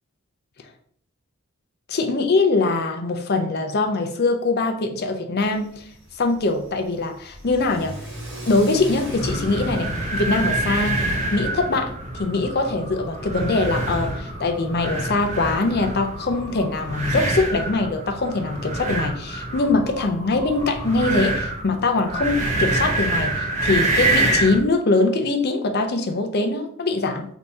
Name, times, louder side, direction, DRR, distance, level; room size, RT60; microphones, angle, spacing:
voice 1, 1.9-5.7 6.2-8.0 8.5-27.3, left 3 dB, 45° left, 5 dB, 0.5 m, -22 dB
Car / Accelerating revving vroom, 5.4-11.6, equal, 50° right, 1.7 m, -38 dB
sound 1, 9.2-24.7, right 2 dB, 35° right, 0.9 m, -26 dB
3.5 x 2.8 x 4.1 m, 0.63 s
head